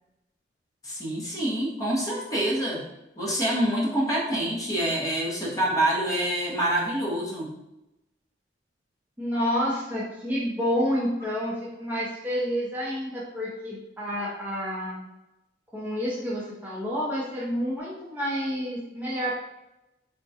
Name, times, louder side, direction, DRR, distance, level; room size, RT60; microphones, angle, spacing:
voice 1, 0.8-2.9 3.2-7.5, right 1 dB, 20° left, -5 dB, 0.8 m, -26 dB
voice 2, 9.2-15.0 15.7-19.4, equal, 10° right, -8 dB, 0.6 m, -29 dB
3.5 x 2.1 x 2.7 m, 0.90 s
head